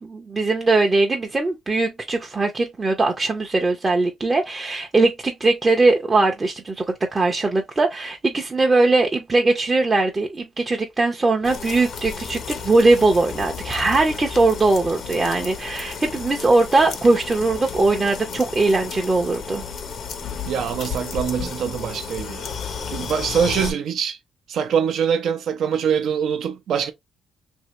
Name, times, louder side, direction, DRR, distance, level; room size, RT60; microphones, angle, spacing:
voice 1, 0.0-19.6, right 3 dB, 25° right, 0.6 m, -20 dB
sound 1, 11.4-23.7, left 6 dB, 65° left, 0.8 m, -33 dB
voice 2, 20.5-22.6 22.9-24.2 24.5-26.9, right 7 dB, 70° right, 0.5 m, -24 dB
2.8 x 2.7 x 3.0 m
cardioid pair, 90°, 0 cm